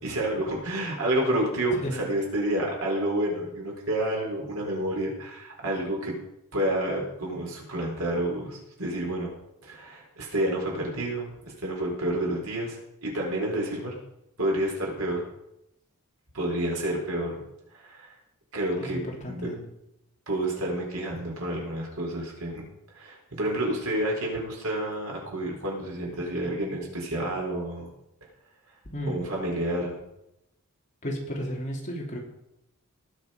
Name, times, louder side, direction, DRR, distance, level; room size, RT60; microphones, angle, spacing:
voice 1, 0.0-6.2 6.5-9.3 9.6-11.3 11.6-13.9 14.4-15.2 16.3-17.4 17.7-18.1 18.5-19.0 19.3-19.5 20.3-22.6 22.9-27.9 29.1-30.0, right 1 dB, 85° right, -1 dB, 4.4 m, -29 dB
voice 2, 18.8-19.7 28.9-29.3 31.0-32.2, equal, 35° left, -1 dB, 3.0 m, -33 dB
18.5 x 6.8 x 5.1 m, 0.84 s
head